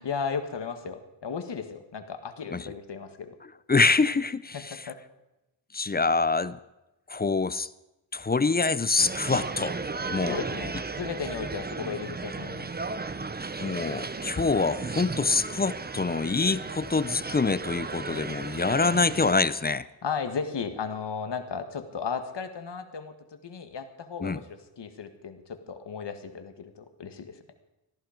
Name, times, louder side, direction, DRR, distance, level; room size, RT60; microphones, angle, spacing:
voice 1, 0.0-3.3 4.5-5.0 10.3-12.7 20.0-23.1 23.4-27.3, left 6 dB, 60° left, 8 dB, 1.7 m, -35 dB
voice 2, 3.7-4.8 5.7-6.6 7.1-7.7 8.1-9.7 10.1-10.4 13.6-19.9 24.2-24.4, left 4 dB, 20° left, 17 dB, 0.4 m, -25 dB
sound 1, 9.0-19.3, right 4 dB, 20° right, 0.7 m, -35 dB
17.5 x 13.5 x 5.1 m, 0.96 s
wide cardioid pair, 115°, 48 cm